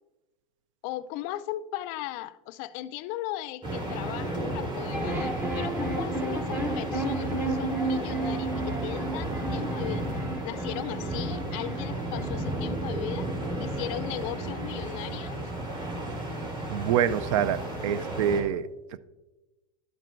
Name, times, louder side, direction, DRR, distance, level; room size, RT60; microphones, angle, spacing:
voice 1, 0.8-10.1 10.4-13.3 13.6-15.4, left 14 dB, 50° left, 0.4 m, -37 dB
sound 1, 3.6-18.4, right 1 dB, 30° right, 3.0 m, -33 dB
sound 2, 4.9-15.2, right 2 dB, 10° right, 0.8 m, -34 dB
voice 2, 16.7-19.0, right 9 dB, 65° right, 0.4 m, -26 dB
11.5 x 7.5 x 2.5 m
supercardioid pair, 130°, 18 cm